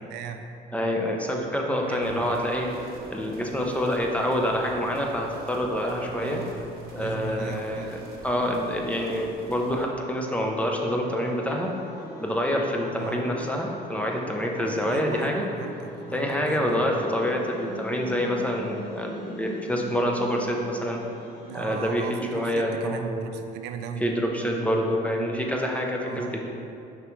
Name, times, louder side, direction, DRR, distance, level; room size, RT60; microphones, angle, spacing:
voice 1, 0.1-0.4 1.8-2.3 6.2-6.6 6.9-8.0 12.9-13.3 14.9-16.8 21.4-24.1 26.0-26.4, right 6 dB, 90° right, 6 dB, 0.5 m, -37 dB
voice 2, 0.7-2.7 3.1-6.4 6.9-8.0 8.2-11.7 12.2-15.5 16.1-21.0 21.5-22.1 22.3-23.3 24.0-26.5, equal, 10° left, 0 dB, 0.7 m, -27 dB
sound 1, 2.0-9.8, right 2 dB, 65° right, 1.0 m, -45 dB
sound 2, 10.6-21.6, left 1 dB, 55° left, 1.1 m, -41 dB
6.5 x 5.0 x 3.2 m, 2.6 s
cardioid pair, 110°, 17 cm